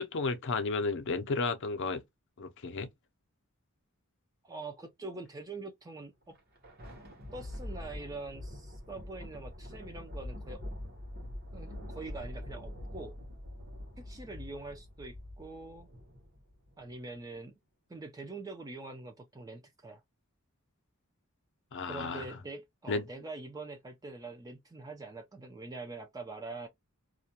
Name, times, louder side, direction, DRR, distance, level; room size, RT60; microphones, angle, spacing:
voice 1, 0.0-2.0 2.4-2.9 21.7-22.2 22.9-23.0, left 4 dB, 60° left, 0.5 m, -32 dB
voice 2, 4.4-6.3 7.3-10.8 11.5-13.2 14.0-15.9 16.8-17.5 17.9-20.0 21.9-26.7, right 3 dB, 15° right, 0.4 m, -44 dB
Thunder, 6.2-17.0, left 1 dB, 50° right, 1.0 m, -44 dB
2.4 x 2.2 x 2.7 m
head